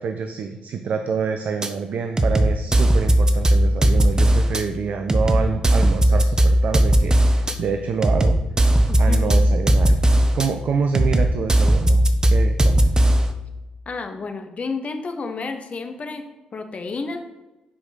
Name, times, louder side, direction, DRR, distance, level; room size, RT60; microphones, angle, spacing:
voice 1, 0.0-8.4 9.0-10.0 10.3-12.9, right 5 dB, 50° right, 6 dB, 0.6 m, -27 dB
sound 1, 1.6-1.7 2.2-4.6 5.1-7.5 8.0-10.5 10.9-13.3, right 1 dB, 20° right, 0.8 m, -17 dB
voice 2, 8.9-9.4 13.9-16.2 16.5-17.2, left 4 dB, 40° left, 6 dB, 1.0 m, -31 dB
9.6 x 5.0 x 3.9 m, 1.0 s
figure-of-eight pair, 40°, 3 cm